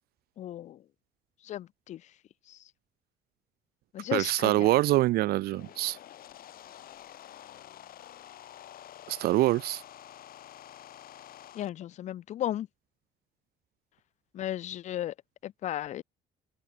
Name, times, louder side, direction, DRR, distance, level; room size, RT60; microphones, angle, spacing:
voice 1, 0.4-0.8 1.4-2.0 2.5-2.6 3.9-4.7 11.5-12.7 14.3-15.1 15.4-16.0, left 12 dB, 45° left, 0.4 m, -35 dB
voice 2, 4.1-6.0 9.1-9.8, right 17 dB, 65° right, 0.4 m, -25 dB
sound 1, 5.3-11.7, left 12 dB, 60° left, 2.0 m, -49 dB
open air
cardioid pair, 110°, 17 cm